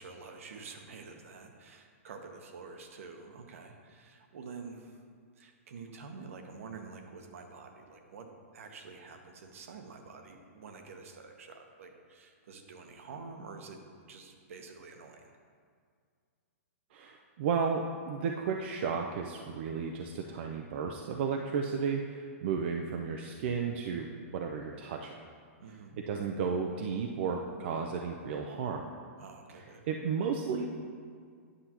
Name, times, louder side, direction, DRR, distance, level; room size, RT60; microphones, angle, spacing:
voice 1, 0.0-5.0 5.4-13.8 14.1-15.3 25.6-26.0 29.2-29.8, right 4 dB, 70° right, 4 dB, 1.0 m, -48 dB
voice 2, 16.9-25.1 26.1-28.9 29.9-30.7, right 5 dB, 50° right, 2 dB, 0.5 m, -33 dB
9.8 x 6.7 x 2.9 m, 2.1 s
hypercardioid pair, 155°, 8 cm